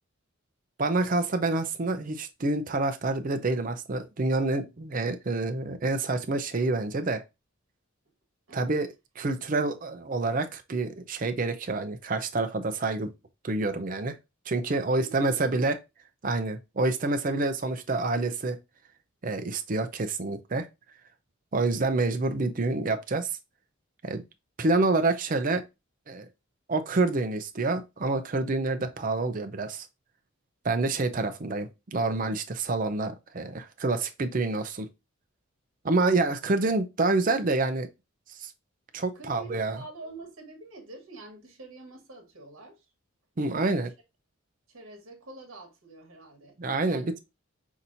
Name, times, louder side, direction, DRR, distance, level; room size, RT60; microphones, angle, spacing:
voice 1, 0.8-7.2 8.5-8.9 9.2-13.1 13.4-14.2 14.5-15.8 16.2-18.6 19.2-20.7 21.5-23.4 24.0-24.2 24.6-25.6 26.1-26.3 26.7-29.9 30.6-34.9 35.8-37.9 38.3-38.5 38.9-39.8 43.4-43.9 46.6-47.2, right 3 dB, 40° right, 0.5 m, -27 dB
voice 2, 14.9-15.3 39.1-42.8 43.6-43.8 44.7-46.6 46.9-47.2, right 2 dB, 70° right, 1.4 m, -46 dB
5.8 x 2.7 x 2.6 m
head